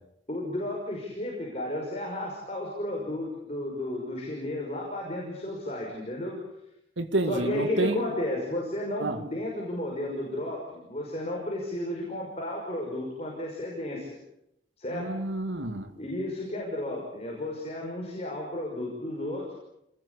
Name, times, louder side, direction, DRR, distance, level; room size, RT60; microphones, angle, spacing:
voice 1, 0.3-6.4 7.3-14.2 14.8-15.1 16.0-19.5, left 1 dB, 35° left, -1 dB, 5.9 m, -33 dB
voice 2, 7.0-8.0 9.0-9.2 14.9-15.9, right 2 dB, 80° right, 8 dB, 2.5 m, -29 dB
28.0 x 20.5 x 8.5 m, 0.81 s
head